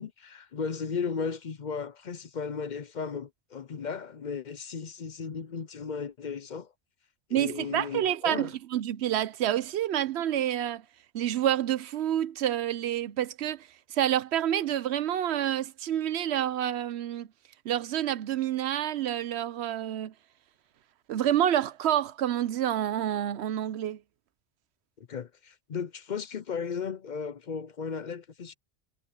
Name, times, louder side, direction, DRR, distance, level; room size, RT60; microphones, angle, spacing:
voice 1, 0.0-6.7 7.3-8.6 25.0-28.5, left 6 dB, 50° left, 0.7 m, -35 dB
voice 2, 7.3-10.8 11.1-17.3 17.6-20.1 21.1-24.0, right 11 dB, 85° right, 0.9 m, -28 dB
omnidirectional pair, 1.1 m